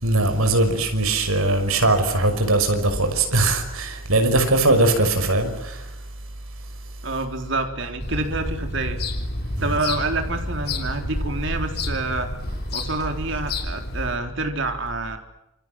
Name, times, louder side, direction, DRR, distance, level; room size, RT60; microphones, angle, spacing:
voice 1, 0.0-5.9 9.7-9.8, right 2 dB, 70° right, 6.0 m, -20 dB
voice 2, 7.0-9.0 9.6-12.3 12.7-15.2, right 3 dB, 55° right, 3.9 m, -27 dB
sound 1, 8.0-14.2, left 2 dB, 45° left, 3.7 m, -30 dB
28.0 x 27.0 x 7.7 m
head